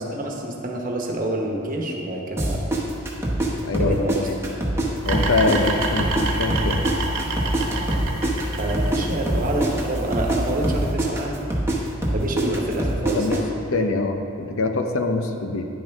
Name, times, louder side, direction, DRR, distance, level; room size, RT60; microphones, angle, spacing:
voice 1, 0.1-2.6 3.8-4.3 8.6-11.4 12.1-13.4, right 1 dB, 40° right, 0 dB, 1.1 m, -27 dB
sound 1, 2.4-4.9 5.1-9.0 9.3-13.4, right 1 dB, 10° right, 1.0 m, -24 dB
voice 2, 3.6-4.6 5.1-6.8 13.1-13.4 13.7-15.7, left 3 dB, 80° left, 5 dB, 0.7 m, -24 dB
sound 2, 5.0-10.9, right 2 dB, 75° right, 1.2 m, -27 dB
10.5 x 8.7 x 3.6 m, 2.6 s
head